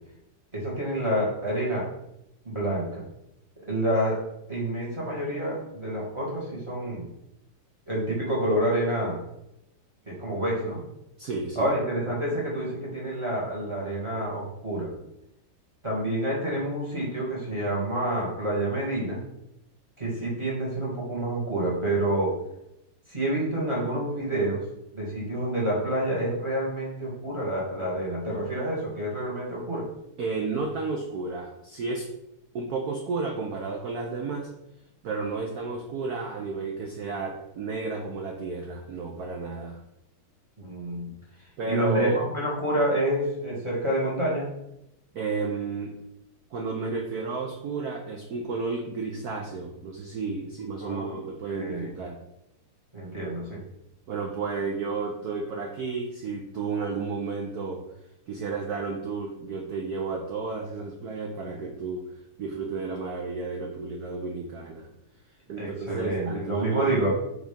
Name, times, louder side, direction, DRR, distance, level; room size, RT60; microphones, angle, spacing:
voice 1, 0.5-1.9 2.4-3.0 3.6-4.2 4.5-7.1 7.9-9.2 10.1-10.8 11.6-14.9 15.8-19.2 20.0-22.4 23.1-24.6 24.9-29.9 40.6-41.1 41.6-44.5 50.8-51.2 51.5-51.9 52.9-53.6 65.6-67.1, right 1 dB, 15° right, -5 dB, 1.7 m, -28 dB
voice 2, 11.2-11.7 30.2-32.1 32.5-34.5 35.0-39.8 41.6-42.2 45.1-45.9 46.5-52.2 54.1-57.8 58.3-62.1 62.4-64.9 65.5-66.9, right 4 dB, 75° right, 2 dB, 0.9 m, -32 dB
5.1 x 3.8 x 5.1 m, 0.83 s
omnidirectional pair, 2.4 m